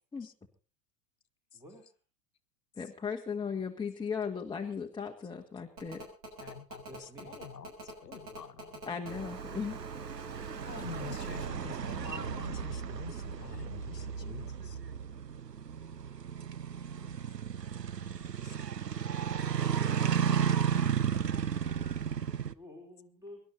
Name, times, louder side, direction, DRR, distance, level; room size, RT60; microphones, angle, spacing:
voice 1, 1.5-1.9 6.8-7.4 21.3-23.4, equal, 5° right, 2 dB, 4.3 m, -52 dB
voice 2, 2.8-6.0 8.9-9.8, left 6 dB, 10° left, 2 dB, 1.4 m, -37 dB
Telephone, 5.8-11.5, right 1 dB, 70° right, 6.7 m, -47 dB
voice 3, 6.4-8.8 10.6-14.8 18.4-18.5, left 7 dB, 85° left, 11 dB, 1.2 m, -46 dB
sound 1, 9.1-22.5, right 8 dB, 90° right, 0.8 m, -34 dB
24.5 x 11.5 x 4.1 m, 0.36 s
figure-of-eight pair, 90°, 47 cm